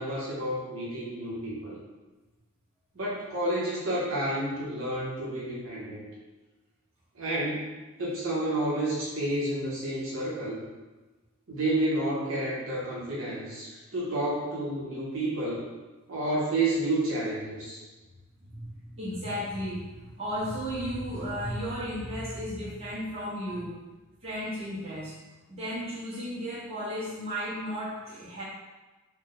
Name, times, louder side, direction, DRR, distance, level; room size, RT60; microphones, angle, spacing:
voice 1, 0.0-1.8 2.9-6.0 7.1-7.7 8.0-10.6 11.5-15.7 16.1-17.8, right 1 dB, 60° right, -7 dB, 0.8 m, -30 dB
voice 2, 18.4-23.8 24.2-25.2 25.5-28.4, equal, 30° right, -9 dB, 1.0 m, -34 dB
3.3 x 2.0 x 3.9 m, 1.2 s
head